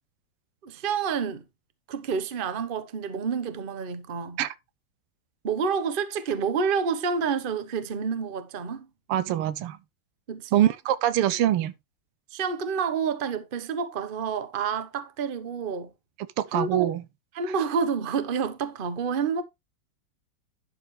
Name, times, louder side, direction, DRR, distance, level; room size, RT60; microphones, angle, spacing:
voice 1, 0.6-1.4 1.9-4.4 5.4-8.9 10.3-10.6 12.3-15.9 16.5-16.9 17.3-19.4, right 6 dB, 40° right, 0.8 m, -29 dB
voice 2, 9.1-9.8 10.5-11.7 16.4-17.0, right 12 dB, 90° right, 1.7 m, -24 dB
11.5 x 6.8 x 3.2 m
omnidirectional pair, 2.4 m